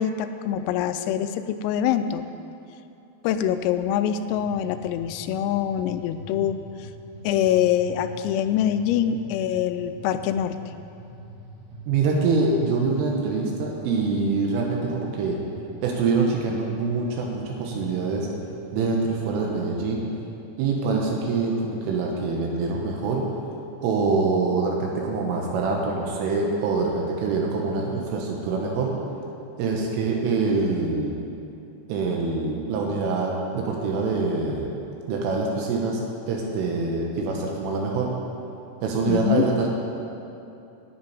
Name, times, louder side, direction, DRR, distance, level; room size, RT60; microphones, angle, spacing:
voice 1, 0.0-2.3 3.2-6.6 7.3-10.6 39.1-39.5, left 10 dB, 90° left, 10 dB, 3.3 m, -24 dB
sound 1, 4.2-19.4, right 2 dB, 55° right, 2.4 m, -44 dB
voice 2, 11.9-15.4 15.8-18.3 18.7-20.1 20.6-23.3 23.8-28.9 29.6-31.1 31.9-34.7 35.1-36.0 36.3-38.1 38.8-39.7, right 4 dB, 80° right, -1 dB, 3.8 m, -25 dB
10.0 x 7.5 x 9.5 m, 2.8 s
omnidirectional pair, 5.8 m